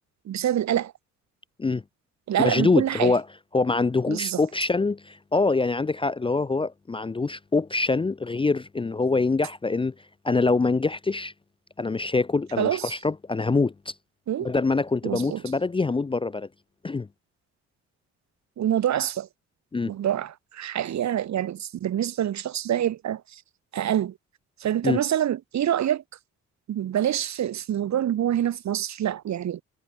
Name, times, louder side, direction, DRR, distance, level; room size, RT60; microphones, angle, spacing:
voice 1, 0.2-0.9 2.3-3.1 4.1-4.4 12.6-12.9 14.3-14.5 15.0-15.4 18.6-19.3 19.9-23.4 23.7-24.2 24.6-26.0 26.7-29.6, right 11 dB, 65° right, 2.4 m, -26 dB
voice 2, 2.4-3.2 3.5-9.9 10.2-11.3 11.8-13.9 14.4-16.5 16.8-17.1 19.7-19.9 24.8-25.0, left 3 dB, 15° left, 0.6 m, -24 dB
cardioid pair, 90°, 30 cm